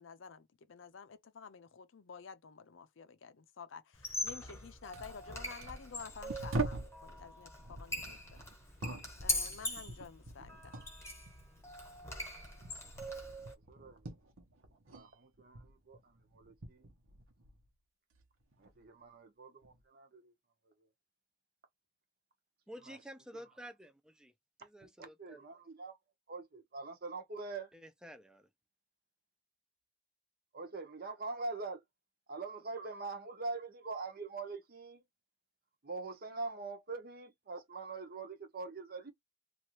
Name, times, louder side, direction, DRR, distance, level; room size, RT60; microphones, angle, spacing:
voice 1, 0.0-8.4 9.2-10.8, left 6 dB, 70° left, 0.5 m, -51 dB
Squeak, 3.9-13.5, left 2 dB, 15° left, 1.0 m, -42 dB
sound 1, 4.9-7.0 7.6-11.0 11.3-15.1 15.3-17.7 18.1-18.8 19.6-19.8, right 2 dB, 90° right, 0.9 m, -44 dB
voice 2, 13.7-14.0 14.9-16.9 18.6-20.3 22.9-23.0 23.3-23.4 25.0-26.0 26.3-27.7 30.5-31.8 32.3-35.0 35.8-39.1, right 3 dB, 50° right, 0.7 m, -43 dB
voice 3, 22.7-24.3 24.6-25.4 27.7-28.5, equal, 5° right, 0.5 m, -51 dB
2.9 x 2.5 x 2.9 m
head